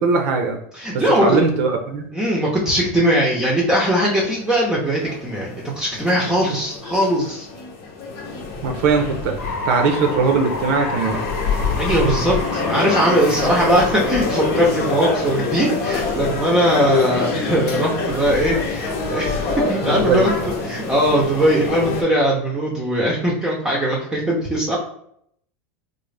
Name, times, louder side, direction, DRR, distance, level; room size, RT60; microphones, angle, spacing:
voice 1, 0.0-0.6 1.2-2.1 8.6-9.3 9.7-11.2 19.8-20.2, right 4 dB, 60° right, 4 dB, 0.6 m, -19 dB
voice 2, 0.7-1.4 2.1-7.5 11.8-20.3 20.7-24.8, equal, 10° right, -4 dB, 0.6 m, -20 dB
sound 1, 4.0-22.0, left 4 dB, 50° left, 0.8 m, -26 dB
sound 2, 9.0-17.0, left 2 dB, 80° left, 1.1 m, -31 dB
3.8 x 2.0 x 3.2 m, 0.69 s
supercardioid pair, 140°, 8 cm